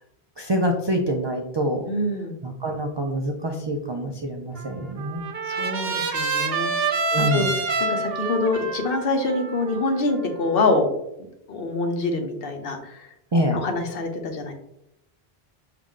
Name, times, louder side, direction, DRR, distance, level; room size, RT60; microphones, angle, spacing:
voice 1, 0.4-1.9 2.4-5.2 7.1-7.5 13.3-13.6, right 1 dB, 45° right, 2 dB, 0.3 m, -25 dB
voice 2, 1.9-2.4 5.5-7.5 7.8-10.9 11.5-13.1 13.5-14.5, left 2 dB, 65° left, 4 dB, 0.9 m, -25 dB
Trumpet, 4.6-10.7, right 3 dB, 70° right, 0.9 m, -28 dB
5.7 x 2.5 x 3.6 m, 0.82 s
omnidirectional pair, 1.1 m